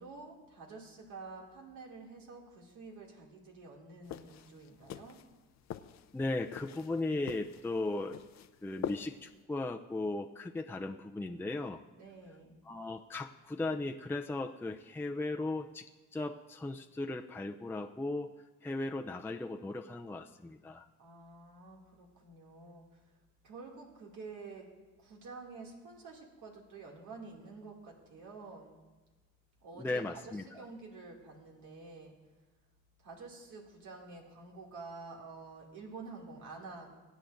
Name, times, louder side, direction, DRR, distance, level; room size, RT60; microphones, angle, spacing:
voice 1, 0.0-5.2 12.0-12.6 21.0-23.1 23.4-24.7 25.0-28.8 29.6-32.1 33.0-36.9, right 3 dB, 80° right, -1 dB, 2.5 m, -49 dB
sound 1, 4.0-9.4, left 10 dB, 65° left, 0.6 m, -45 dB
voice 2, 6.1-8.2 8.6-11.8 12.7-15.8 16.1-18.3 18.6-20.8 29.8-30.6, left 2 dB, 5° left, 3 dB, 0.5 m, -37 dB
23.5 x 9.3 x 2.6 m, 1.2 s
cardioid pair, 90°, 30 cm